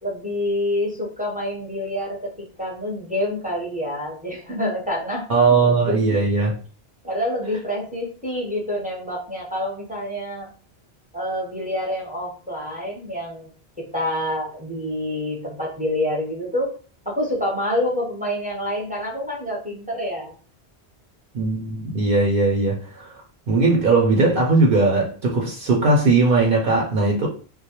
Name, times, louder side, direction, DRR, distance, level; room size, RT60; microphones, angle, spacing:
voice 1, 0.0-2.3 2.6-5.3 5.6-6.0 7.0-10.5 11.1-13.5 13.8-16.8 17.1-20.3, left 1 dB, 10° right, 0.6 m, -27 dB
voice 2, 5.3-6.5 21.3-27.3, right 3 dB, 60° right, 0.7 m, -19 dB
2.2 x 2.0 x 2.8 m
omnidirectional pair, 1.1 m